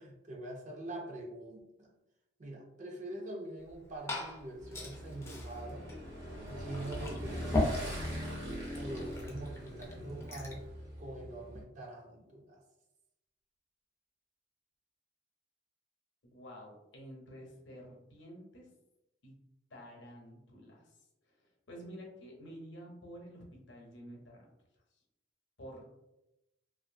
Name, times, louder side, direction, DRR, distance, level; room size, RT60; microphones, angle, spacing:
voice 1, 0.0-1.9 2.4-5.9 6.5-10.6 11.0-12.6, right 1 dB, 40° right, 0 dB, 0.5 m, -44 dB
Glass / Fill (with liquid), 3.6-10.7, left 2 dB, 15° left, 0.4 m, -40 dB
Motorcycle / Engine, 4.6-11.6, equal, 60° right, 0.9 m, -42 dB
voice 2, 16.2-18.7 19.2-19.3 19.7-21.0 21.2-24.5 25.6-25.9, equal, 70° left, -1 dB, 0.8 m, -50 dB
2.6 x 2.5 x 2.6 m, 0.90 s
head